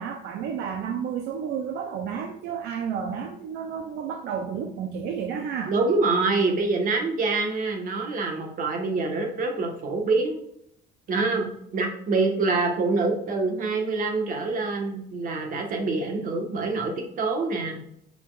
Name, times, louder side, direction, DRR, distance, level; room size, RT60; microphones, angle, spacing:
voice 1, 0.0-5.7, right 7 dB, 75° right, 4 dB, 0.6 m, -31 dB
voice 2, 5.7-10.4 11.1-17.8, right 3 dB, 55° right, 2 dB, 1.5 m, -26 dB
6.9 x 5.5 x 2.5 m, 0.73 s
cardioid pair, 110°, 17 cm